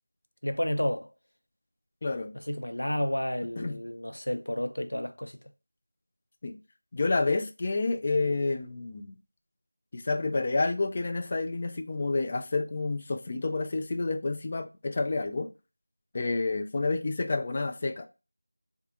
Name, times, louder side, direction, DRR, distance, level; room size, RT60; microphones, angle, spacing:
voice 1, 0.4-1.1 2.3-5.4, left 1 dB, 75° left, 0.6 m, -31 dB
voice 2, 2.0-2.3 3.6-3.8 6.4-6.6 6.9-9.1 9.9-15.5 16.1-18.1, left 3 dB, 25° left, 0.3 m, -29 dB
3.6 x 2.4 x 4.0 m
figure-of-eight pair, 175°, 0 cm